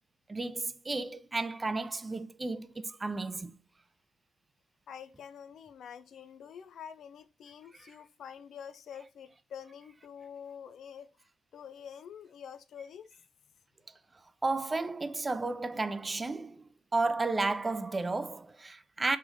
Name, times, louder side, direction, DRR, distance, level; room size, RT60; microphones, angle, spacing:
voice 1, 0.3-3.6 14.4-16.6 16.9-19.2, right 3 dB, 25° right, 0.3 m, -32 dB
voice 2, 4.9-11.1 11.5-13.1, left 8 dB, 65° left, 0.4 m, -47 dB
3.8 x 3.1 x 2.6 m
cardioid pair, 90°, 0 cm